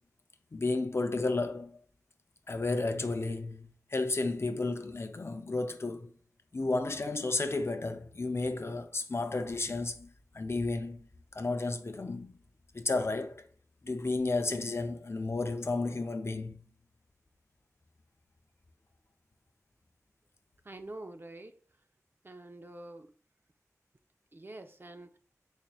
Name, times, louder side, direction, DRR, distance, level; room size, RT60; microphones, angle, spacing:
voice 1, 0.5-1.8 2.5-6.1 6.5-12.4 12.7-13.5 13.8-16.6, left 3 dB, 45° left, 0.4 m, -32 dB
voice 2, 20.6-21.6 22.2-23.1 24.3-25.2, right 2 dB, 40° right, 0.4 m, -46 dB
4.0 x 3.1 x 2.3 m
wide cardioid pair, 55°, 6 cm